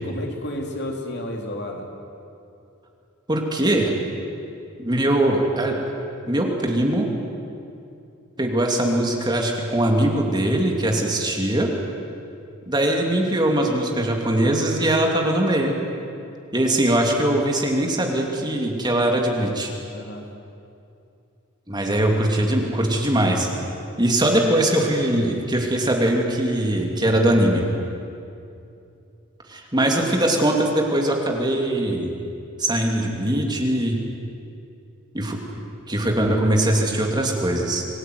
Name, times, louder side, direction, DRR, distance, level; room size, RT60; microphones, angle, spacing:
voice 1, 0.0-1.9 19.9-20.3, left 1 dB, 55° left, 1 dB, 3.4 m, -31 dB
voice 2, 3.3-3.9 4.8-5.8 6.3-7.1 8.4-11.7 12.7-15.7 16.5-19.7 21.7-23.5 24.0-27.6 29.5-32.1 32.6-34.0 35.1-35.4 35.9-37.8, right 1 dB, 20° right, 1 dB, 2.8 m, -21 dB
26.0 x 19.0 x 9.5 m, 2.6 s
head